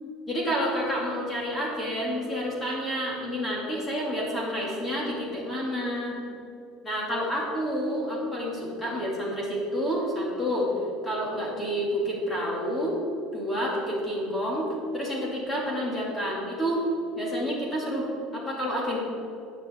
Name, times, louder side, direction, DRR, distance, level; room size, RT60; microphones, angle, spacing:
voice 1, 0.3-6.2 6.8-10.7 11.0-13.0 13.3-16.8 17.2-18.1 18.3-19.0, equal, 15° left, -4 dB, 2.8 m, -29 dB
15.0 x 9.5 x 3.8 m, 2.6 s
cardioid pair, 170°, 0 cm